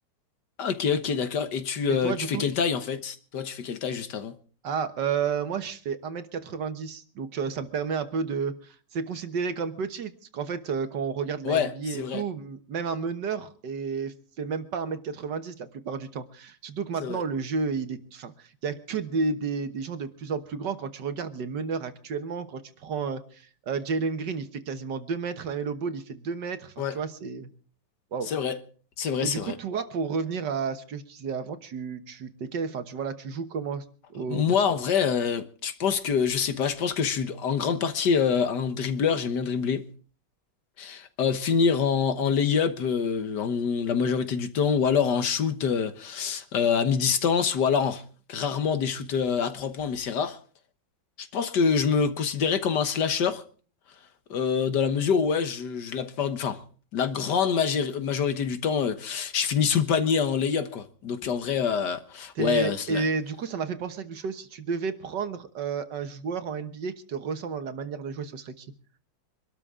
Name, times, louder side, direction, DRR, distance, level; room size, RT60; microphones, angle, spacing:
voice 1, 0.6-4.3 11.4-12.2 17.0-17.2 26.8-27.0 28.3-28.6 29.0-29.5 34.3-39.9 40.8-48.0 48.3-50.4 51.2-53.4 54.3-56.6 56.9-63.0, left 6 dB, 60° left, 1.7 m, -26 dB
voice 2, 1.9-2.5 4.6-27.5 28.1-28.3 29.2-33.8 34.1-34.6 62.4-68.7, right 5 dB, 65° right, 1.8 m, -31 dB
24.5 x 13.0 x 3.7 m
omnidirectional pair, 2.1 m